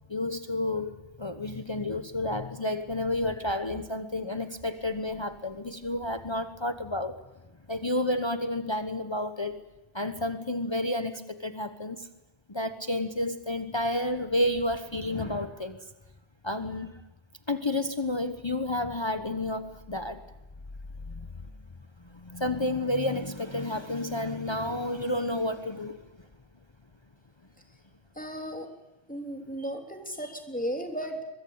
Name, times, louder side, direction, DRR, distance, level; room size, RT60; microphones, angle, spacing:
voice 1, 0.1-7.2 7.7-9.6 9.9-12.1 12.5-15.8 16.4-17.0 17.5-20.2 21.1-21.3 22.1-26.1, left 1 dB, 25° left, 10 dB, 1.0 m, -30 dB
voice 2, 28.2-28.7 29.1-31.2, equal, 10° left, 3 dB, 3.4 m, -35 dB
23.0 x 22.0 x 8.7 m, 1.0 s
omnidirectional pair, 1.1 m